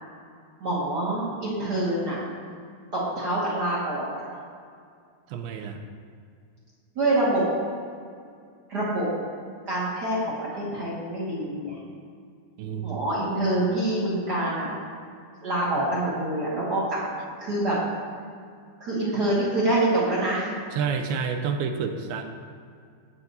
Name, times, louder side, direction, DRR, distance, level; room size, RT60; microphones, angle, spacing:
voice 1, 0.6-2.2 2.9-4.3 6.9-7.4 8.7-9.1 9.7-11.8 12.8-14.7 15.4-17.0 17.4-17.7 18.8-20.6, right 1 dB, 60° right, -7 dB, 1.1 m, -26 dB
voice 2, 5.3-5.9 12.6-13.0 20.7-22.2, right 6 dB, 80° right, 5 dB, 2.5 m, -29 dB
18.5 x 7.2 x 2.6 m, 2.2 s
omnidirectional pair, 4.7 m